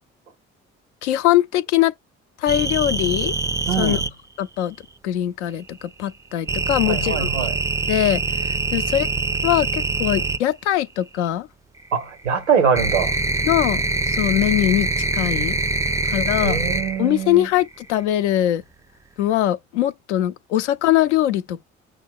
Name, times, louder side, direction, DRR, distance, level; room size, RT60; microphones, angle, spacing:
voice 1, 1.0-1.9 2.4-3.3 3.8-4.0 4.4-4.8 5.0-7.3 7.9-9.1 9.4-11.5 13.4-14.9 15.1-15.6 16.1-16.6 17.0-18.6 19.2-21.6, left 13 dB, 80° left, 0.5 m, -21 dB
sound 1, 2.5-4.1 6.5-10.4 11.8-17.1 17.4-17.9, right 3 dB, 10° right, 0.3 m, -24 dB
voice 2, 3.7-4.0 6.9-7.5 11.9-13.1 16.4-17.5, right 6 dB, 90° right, 0.7 m, -23 dB
6.2 x 2.1 x 3.5 m
figure-of-eight pair, 45°, 34 cm